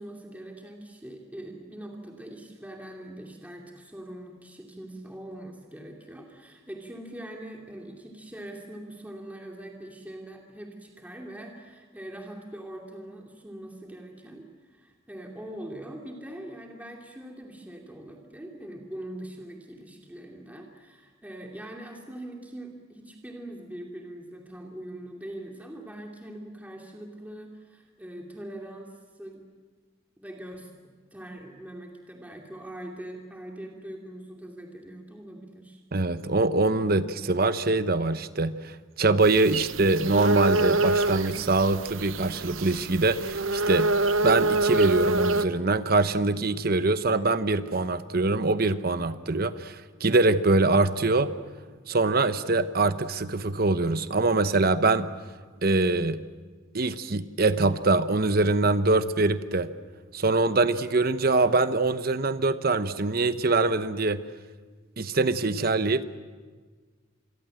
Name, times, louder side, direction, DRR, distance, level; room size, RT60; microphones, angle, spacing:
voice 1, 0.0-29.4 30.2-35.8, right 1 dB, 10° right, 0 dB, 2.6 m, -42 dB
voice 2, 35.9-43.9 44.2-51.3 51.9-55.1 55.6-56.2 56.7-59.7 60.1-64.2 65.0-66.0, right 3 dB, 50° right, 12 dB, 1.0 m, -24 dB
sound 1, 39.2-45.5, right 2 dB, 85° right, 1.0 m, -26 dB
27.0 x 22.5 x 7.8 m, 1.5 s
head